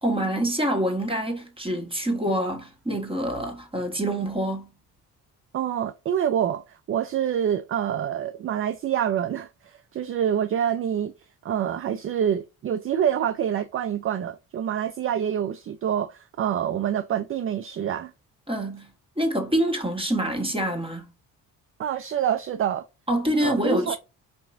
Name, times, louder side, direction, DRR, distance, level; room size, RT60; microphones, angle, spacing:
voice 1, 0.0-4.7 18.5-18.9 19.2-21.0 23.1-24.0, right 1 dB, 10° right, 1.6 m, -26 dB
voice 2, 5.5-11.1 11.4-18.1 21.8-22.8 23.4-24.0, right 9 dB, 35° right, 0.4 m, -26 dB
4.7 x 2.8 x 2.6 m
hypercardioid pair, 45°, 43 cm